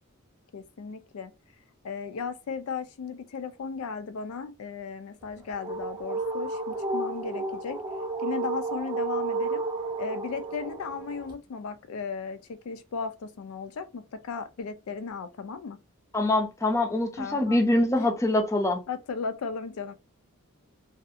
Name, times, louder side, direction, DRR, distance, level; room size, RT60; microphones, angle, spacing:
voice 1, 0.5-1.3 1.8-7.8 8.2-9.6 10.0-15.8 17.2-17.6 18.0-18.1 18.9-19.9, left 5 dB, 80° left, 0.4 m, -36 dB
sound 1, 5.2-11.3, right 3 dB, 20° right, 0.7 m, -32 dB
voice 2, 16.1-18.8, left 1 dB, 15° left, 0.5 m, -24 dB
2.7 x 2.4 x 2.4 m
head